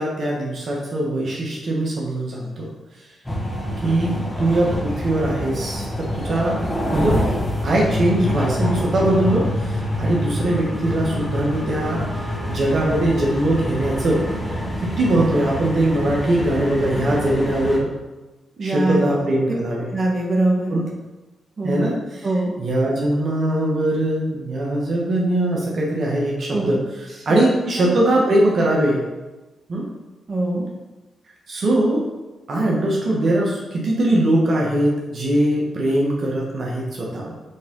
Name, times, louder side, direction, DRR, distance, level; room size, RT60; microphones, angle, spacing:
voice 1, 0.0-2.7 3.8-6.6 6.9-7.2 7.6-14.3 14.8-17.9 18.6-19.9 20.7-20.9 21.6-22.3 22.6-29.0 29.7-29.9 31.5-32.1 32.5-37.3, right 1 dB, 60° right, -3 dB, 1.5 m, -21 dB
sound 1, 3.2-17.8, equal, 10° left, 1.7 m, -26 dB
voice 2, 18.6-19.1 19.9-20.8 21.6-21.8 22.2-22.5 26.5-26.8 27.3-28.0 30.3-30.7, right 2 dB, 40° right, -2 dB, 1.5 m, -23 dB
8.4 x 3.9 x 3.8 m, 1.2 s
supercardioid pair, 50°, 0 cm